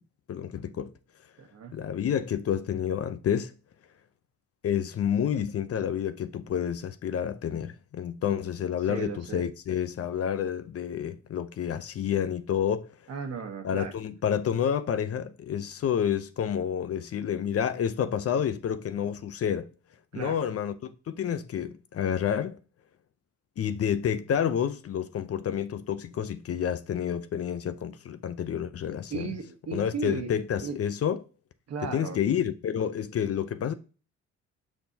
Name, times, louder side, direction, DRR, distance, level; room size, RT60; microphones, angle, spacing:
voice 1, 0.3-0.9 1.7-3.5 4.6-12.9 13.6-19.7 20.1-22.6 23.6-29.3 29.7-31.2 31.9-33.7, left 8 dB, 50° left, 0.7 m, -29 dB
voice 2, 1.4-1.8 8.9-9.5 13.1-13.9 20.1-20.4 29.1-30.3 30.6-30.8 31.7-32.2, right 5 dB, 60° right, 1.2 m, -36 dB
6.5 x 5.8 x 2.8 m
cardioid pair, 90°, 30 cm